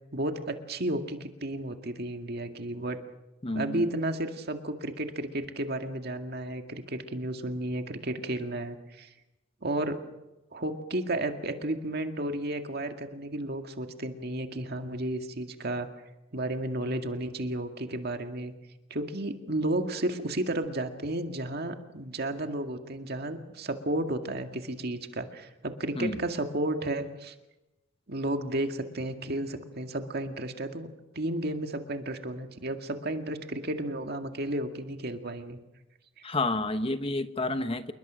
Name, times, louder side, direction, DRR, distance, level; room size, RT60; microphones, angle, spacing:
voice 1, 0.1-3.0 3.5-9.1 9.6-10.0 10.5-15.9 16.3-18.5 18.9-27.3 28.1-30.9 31.1-35.6, right 1 dB, 50° right, 6 dB, 2.1 m, -32 dB
voice 2, 3.4-3.9 26.0-26.2 36.2-37.9, left 2 dB, 30° left, 9 dB, 1.1 m, -30 dB
28.5 x 21.0 x 6.4 m, 0.98 s
head